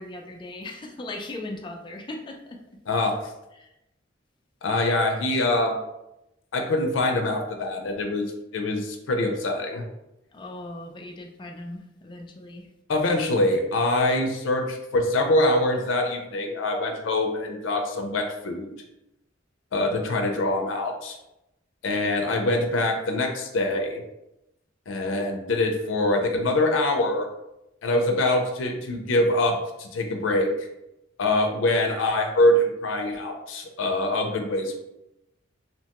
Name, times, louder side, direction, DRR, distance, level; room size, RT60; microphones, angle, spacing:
voice 1, 0.0-2.6 3.6-3.7 10.3-12.7, left 2 dB, 25° left, 3 dB, 0.3 m, -38 dB
voice 2, 2.9-3.2 4.6-5.8 6.5-8.3 8.5-9.8 12.9-18.7 19.7-21.2 21.8-24.0 24.9-27.3 27.8-30.7 31.2-34.8, left 1 dB, 85° left, 3 dB, 0.4 m, -24 dB
2.8 x 2.2 x 2.8 m, 0.89 s
head